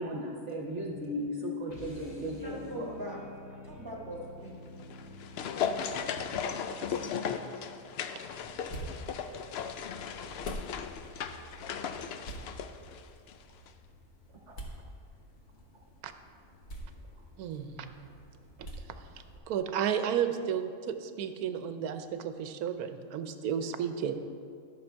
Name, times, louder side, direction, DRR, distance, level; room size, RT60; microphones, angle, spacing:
voice 1, 0.0-2.9 14.5-14.6, equal, 55° right, 0 dB, 1.1 m, -36 dB
sound 1, 1.7-8.1, left 1 dB, 30° left, 2.0 m, -50 dB
voice 2, 2.4-4.5 6.1-6.2 7.5-7.7, right 1 dB, 15° right, -3 dB, 1.4 m, -42 dB
sound 2, 4.8-13.4 13.7-13.8, left 7 dB, 70° left, 0.6 m, -36 dB
sound 3, 8.2-19.4, right 1 dB, 50° left, 1.4 m, -47 dB
voice 3, 17.4-18.1 18.6-18.7 19.5-24.1, right 8 dB, 85° right, 9 dB, 1.1 m, -33 dB
11.5 x 6.5 x 4.5 m, 2.3 s
omnidirectional pair, 1.5 m